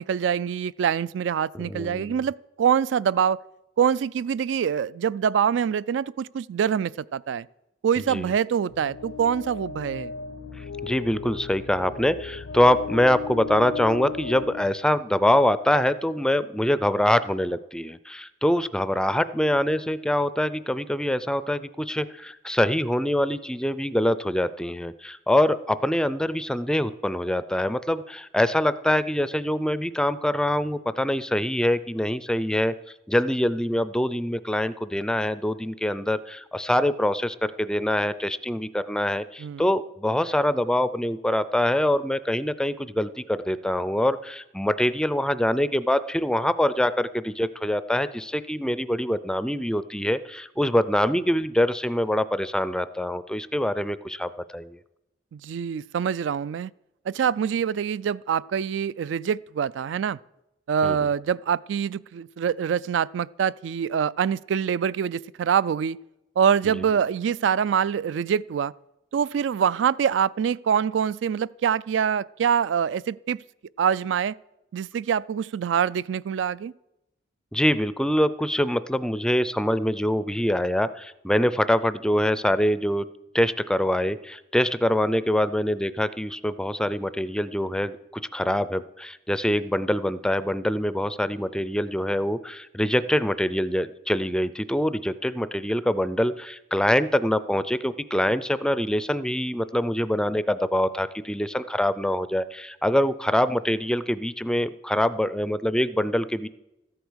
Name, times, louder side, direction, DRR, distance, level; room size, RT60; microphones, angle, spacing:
voice 1, 0.0-3.4 3.8-7.5 7.8-10.1 39.4-39.7 55.3-56.7 57.1-60.2 60.7-66.0 66.4-68.7 69.1-73.4 73.8-74.4 74.7-76.7, right 8 dB, 70° right, 0.3 m, -25 dB
voice 2, 1.5-2.2 8.0-8.3 10.6-32.7 33.1-54.8 60.8-61.0 66.7-66.8 77.5-83.1 83.3-106.5, left 1 dB, 5° left, 0.4 m, -24 dB
sound 1, 8.7-15.6, left 5 dB, 70° left, 0.5 m, -36 dB
13.5 x 8.3 x 6.2 m
head